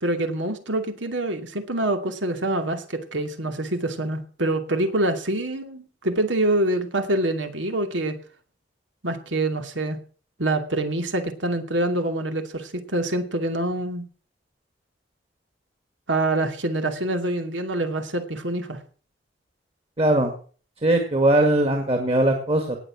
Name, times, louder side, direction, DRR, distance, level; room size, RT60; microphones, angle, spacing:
voice 1, 0.0-8.2 9.0-10.0 10.4-14.0 16.1-18.8, right 1 dB, 90° right, 7 dB, 2.5 m, -25 dB
voice 2, 20.0-20.3 20.8-22.8, right 1 dB, 35° right, 5 dB, 2.1 m, -20 dB
19.0 x 7.1 x 7.2 m, 0.42 s
head